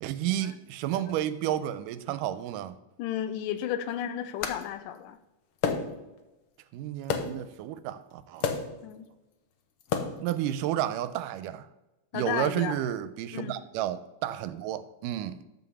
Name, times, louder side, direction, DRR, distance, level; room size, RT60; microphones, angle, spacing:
voice 1, 0.0-2.8 6.7-8.5 10.2-11.7 12.1-15.4, right 12 dB, 85° right, 2.2 m, -31 dB
voice 2, 3.0-5.2 8.8-9.1 12.1-12.8 13.3-13.6, left 10 dB, 90° left, 2.3 m, -33 dB
sound 1, 4.4-4.6 5.6-6.1 7.1-7.5 8.4-8.8 9.8-10.3, left 6 dB, 65° left, 1.4 m, -30 dB
13.0 x 5.6 x 7.1 m
omnidirectional pair, 3.8 m